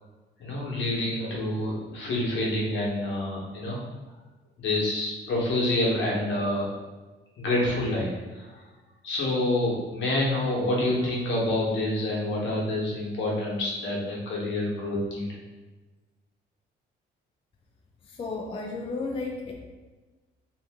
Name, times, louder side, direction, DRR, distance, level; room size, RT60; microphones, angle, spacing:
voice 1, 0.4-3.8 4.6-6.7 7.4-8.6 9.0-15.3, left 1 dB, 70° left, -4 dB, 1.1 m, -27 dB
voice 2, 18.1-19.5, left 3 dB, 25° left, 1 dB, 0.4 m, -33 dB
2.7 x 2.6 x 3.5 m, 1.2 s
cardioid pair, 90°, 20 cm